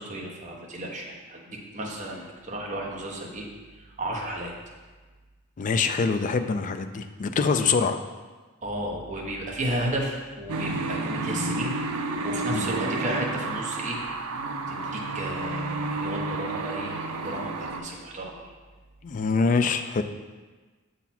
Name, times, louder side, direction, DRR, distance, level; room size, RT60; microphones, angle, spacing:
voice 1, 0.0-3.5 4.0-4.5 8.6-11.7 12.2-14.0 14.7-18.5, right 1 dB, 35° right, -1 dB, 0.9 m, -33 dB
voice 2, 5.6-8.0 12.5-12.7 19.0-20.0, left 4 dB, 35° left, 8 dB, 0.3 m, -24 dB
sound 1, 10.5-17.8, right 3 dB, 80° right, 0.6 m, -31 dB
7.1 x 4.0 x 4.3 m, 1.3 s
head